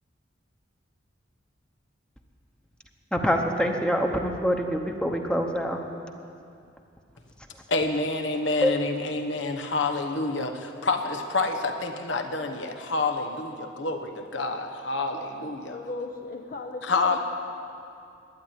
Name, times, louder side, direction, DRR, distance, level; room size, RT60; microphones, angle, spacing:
voice 1, 3.1-5.8 8.6-8.7, equal, 5° left, 0.9 m, -25 dB
voice 2, 7.7-15.8 16.8-17.2, left 3 dB, 80° left, 1.2 m, -28 dB
voice 3, 15.7-17.2, left 3 dB, 50° left, 0.8 m, -36 dB
12.0 x 9.8 x 9.1 m
head